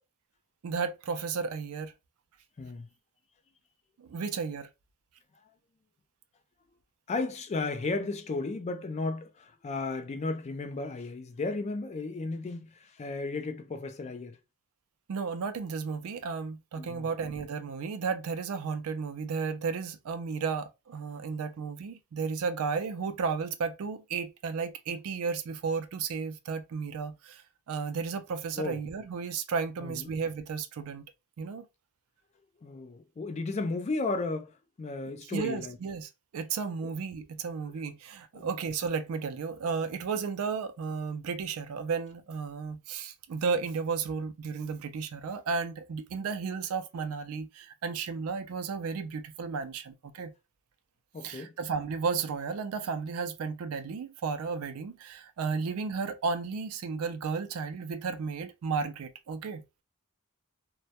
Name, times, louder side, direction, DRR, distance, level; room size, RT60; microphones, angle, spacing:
voice 1, 0.6-1.9 4.0-4.7 15.1-31.0 31.4-31.7 35.3-50.3 51.2-59.6, right 5 dB, 70° right, 0.4 m, -33 dB
voice 2, 7.1-14.4 16.8-17.1 28.6-28.8 29.8-30.1 32.6-35.8 36.8-36.9 38.3-38.5 51.1-51.5, left 3 dB, 30° left, 0.3 m, -34 dB
2.1 x 2.1 x 2.7 m
head